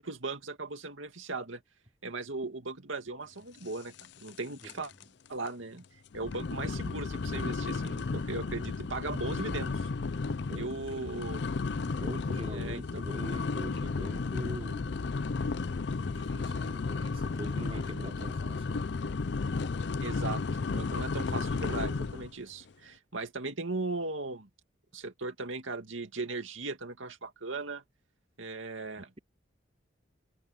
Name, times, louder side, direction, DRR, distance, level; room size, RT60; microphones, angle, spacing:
voice 1, 0.0-1.6 2.0-3.9 4.2-4.9 5.3-5.8 6.1-9.9 10.5-11.4 12.5-12.8 20.0-24.5 24.9-27.8 28.4-29.2, right 3 dB, 85° right, 2.4 m, -38 dB
sound 1, 4.0-4.4 4.6-5.0 5.5-5.6 6.1-22.3, left 4 dB, 60° left, 0.5 m, -33 dB
voice 2, 4.6-5.1 10.5-11.3 11.9-15.3 16.0-18.9 29.0-29.2, equal, 30° right, 3.9 m, -44 dB
head